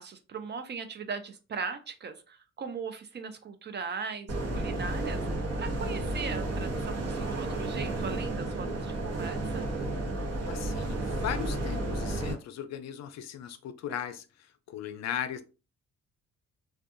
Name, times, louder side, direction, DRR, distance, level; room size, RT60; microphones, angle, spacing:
voice 1, 0.0-5.2 5.6-9.7, right 5 dB, 35° right, 9 dB, 0.4 m, -39 dB
sound 1, 4.3-12.3, right 2 dB, 55° right, 0.8 m, -32 dB
voice 2, 10.5-15.4, left 9 dB, 60° left, 10 dB, 0.4 m, -37 dB
2.6 x 2.2 x 2.4 m, 0.32 s
cardioid pair, 90°, 30 cm